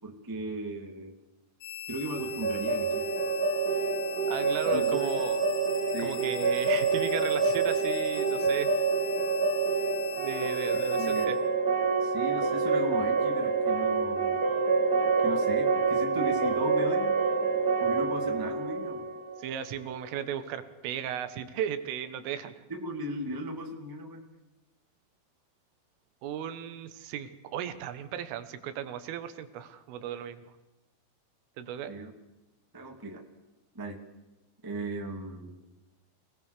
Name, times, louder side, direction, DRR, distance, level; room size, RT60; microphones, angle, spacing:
voice 1, 0.0-1.1 1.9-3.0 4.6-5.0 5.9-6.2 10.9-11.3 12.0-14.4 15.2-17.2 17.8-19.1 22.7-24.2 31.9-32.1 32.7-33.2 33.7-34.0 34.6-35.5, right 1 dB, 15° right, 2 dB, 0.8 m, -37 dB
sound 1, 1.6-11.3, left 9 dB, 65° left, 5.1 m, -42 dB
sound 2, 2.2-19.9, right 4 dB, 60° right, 1.0 m, -27 dB
voice 2, 4.3-5.4 6.0-8.7 10.2-11.4 19.4-22.5 26.2-30.5 31.6-31.9, right 9 dB, 75° right, 10 dB, 3.9 m, -36 dB
27.5 x 18.5 x 6.8 m, 1.0 s
omnidirectional pair, 5.9 m